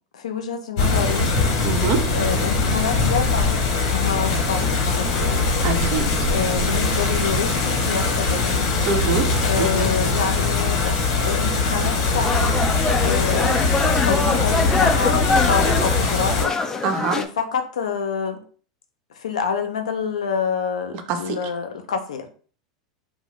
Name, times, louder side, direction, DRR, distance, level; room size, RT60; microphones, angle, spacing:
voice 1, 0.1-1.7 2.1-3.6 3.9-5.4 6.3-8.6 9.4-11.0 11.3-12.5 13.0-13.7 14.1-16.8 17.1-18.4 19.1-22.3, left 6 dB, 85° left, 6 dB, 0.5 m, -27 dB
sound 1, 0.8-16.5, left 3 dB, 65° left, 0.9 m, -21 dB
voice 2, 1.6-2.1 5.6-6.1 8.8-9.3 9.6-9.9 16.8-17.2 21.1-21.5, right 5 dB, 55° right, 5 dB, 0.6 m, -24 dB
sound 2, 12.2-17.3, left 3 dB, 15° left, 0.3 m, -23 dB
2.6 x 2.1 x 3.1 m, 0.42 s
hypercardioid pair, 95°, 3 cm